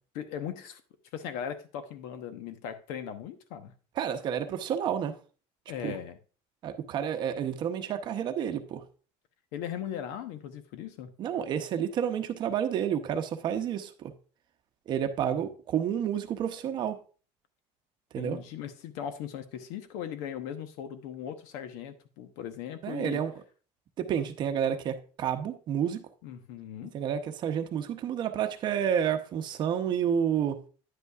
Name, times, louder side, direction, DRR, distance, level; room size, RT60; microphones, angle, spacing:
voice 1, 0.1-0.8 1.1-3.7 5.7-6.2 9.5-11.1 18.2-23.2 26.2-26.9, left 9 dB, 80° left, 1.0 m, -38 dB
voice 2, 4.0-5.2 5.8-6.0 6.6-8.8 11.2-14.1 14.9-17.0 18.1-18.4 22.8-23.3 24.0-26.1 26.9-30.6, right 8 dB, 35° right, 0.7 m, -30 dB
10.0 x 8.2 x 2.4 m
cardioid pair, 175°, 13 cm